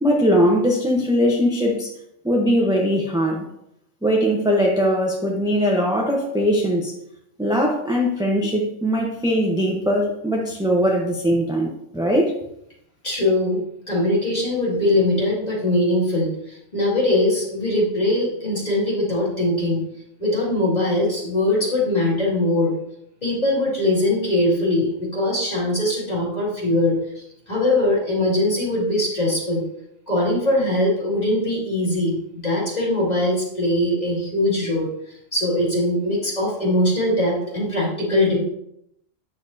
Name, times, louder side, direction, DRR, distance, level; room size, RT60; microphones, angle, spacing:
voice 1, 0.0-1.9 2.2-3.4 4.0-6.9 7.4-12.3, equal, 5° right, -1 dB, 0.7 m, -20 dB
voice 2, 13.0-19.8 20.2-22.7 23.2-29.6 30.1-34.9 35.3-38.4, left 1 dB, 30° left, -5 dB, 2.4 m, -21 dB
8.8 x 6.6 x 2.7 m, 0.77 s
omnidirectional pair, 1.4 m